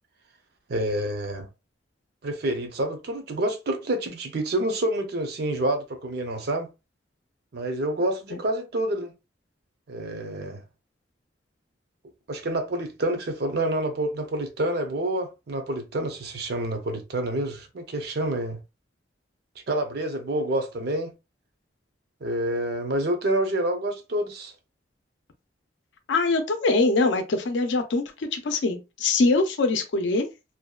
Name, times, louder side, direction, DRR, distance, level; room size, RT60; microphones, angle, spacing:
voice 1, 0.7-1.5 2.2-6.7 7.5-9.1 9.9-10.6 12.3-18.6 19.7-21.1 22.2-24.5, right 1 dB, 60° right, 0.6 m, -28 dB
voice 2, 26.1-30.3, left 3 dB, 75° left, 0.5 m, -23 dB
2.6 x 2.1 x 2.3 m
head